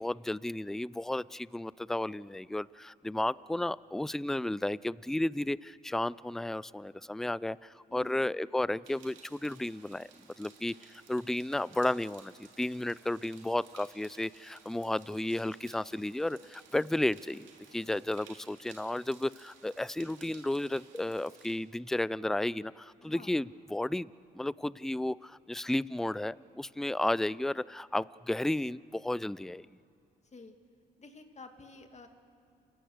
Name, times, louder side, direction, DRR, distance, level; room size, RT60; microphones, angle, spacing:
voice 1, 0.0-10.1 10.4-29.7, left 1 dB, ahead, 21 dB, 0.4 m, -33 dB
voice 2, 7.9-8.5 23.0-23.4 30.2-30.6 31.0-32.1, left 3 dB, 35° left, 6 dB, 2.5 m, -51 dB
sound 1, 8.8-21.6, right 7 dB, 85° right, 2.8 m, -58 dB
29.5 x 15.5 x 6.6 m, 2.5 s
supercardioid pair, 55°, 19 cm